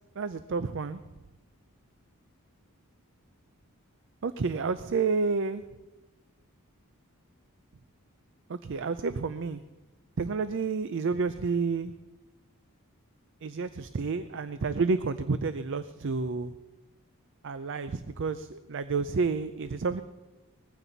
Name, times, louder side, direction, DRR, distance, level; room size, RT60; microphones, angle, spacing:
voice 1, 0.2-1.0 4.2-5.6 8.5-9.6 10.2-11.9 13.4-16.5 17.4-20.0, right 4 dB, 55° right, 12 dB, 0.5 m, -30 dB
20.0 x 15.0 x 4.0 m, 1.2 s
head